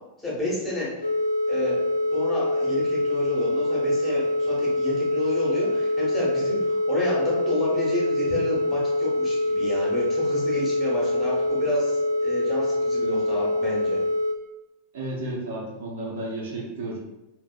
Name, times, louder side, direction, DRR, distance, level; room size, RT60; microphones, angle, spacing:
voice 1, 0.2-0.9 1.5-1.7 2.1-14.0, left 1 dB, 10° left, -6 dB, 1.3 m, -30 dB
sound 1, 1.0-14.3, left 1 dB, 80° left, 0.4 m, -25 dB
voice 2, 14.9-17.0, right 1 dB, 55° right, -3 dB, 0.7 m, -32 dB
3.4 x 2.8 x 2.4 m, 0.98 s
figure-of-eight pair, 90°, 0 cm